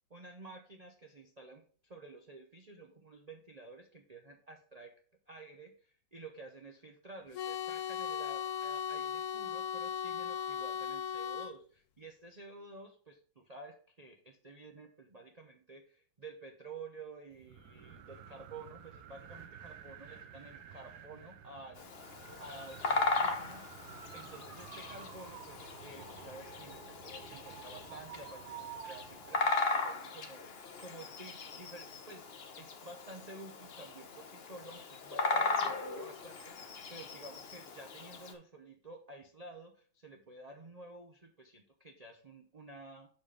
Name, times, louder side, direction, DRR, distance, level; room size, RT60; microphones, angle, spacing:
voice 1, 0.1-4.9 5.3-23.7 24.1-30.4 30.8-32.3 32.6-43.1, right 2 dB, 85° right, 2 dB, 0.3 m, -51 dB
sound 1, 7.3-11.5, left 8 dB, 70° left, 0.9 m, -37 dB
sound 2, 17.3-29.5, right 9 dB, 65° right, 1.1 m, -51 dB
Bird vocalization bird call bird song, 21.8-38.3, left 3 dB, 50° left, 0.8 m, -38 dB
6.7 x 4.2 x 5.1 m, 0.43 s
omnidirectional pair, 2.0 m